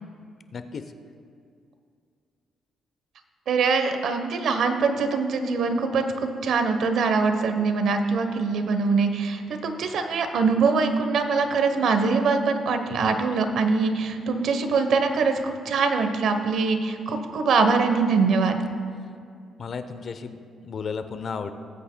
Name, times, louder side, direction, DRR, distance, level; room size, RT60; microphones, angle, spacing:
voice 1, 0.5-0.8 19.6-21.5, left 5 dB, 50° left, 9 dB, 0.7 m, -34 dB
voice 2, 3.5-18.6, right 4 dB, 70° right, 7 dB, 0.9 m, -23 dB
19.0 x 8.3 x 2.2 m, 2.4 s
cardioid pair, 90°, 0 cm